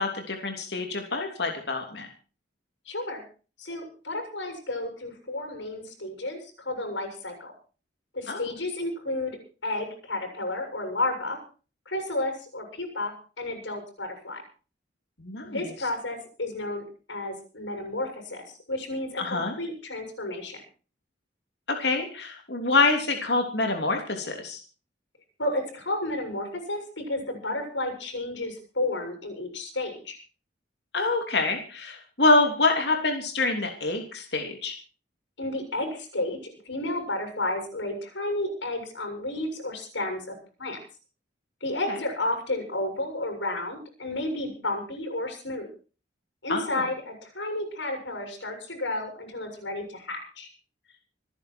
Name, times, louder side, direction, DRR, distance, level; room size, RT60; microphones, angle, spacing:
voice 1, 0.0-2.1 8.3-8.4 15.2-15.6 19.2-19.5 21.7-24.6 30.9-34.7 41.9-42.0 46.5-46.8, left 3 dB, 65° left, 4 dB, 3.1 m, -26 dB
voice 2, 2.9-3.2 3.6-7.5 8.1-11.4 11.9-14.4 15.4-16.8 17.1-20.6 25.4-30.2 35.4-40.3 40.6-40.8 41.6-45.7 46.4-50.5, left 2 dB, 90° left, 4 dB, 7.2 m, -32 dB
26.0 x 10.5 x 4.6 m, 0.37 s
head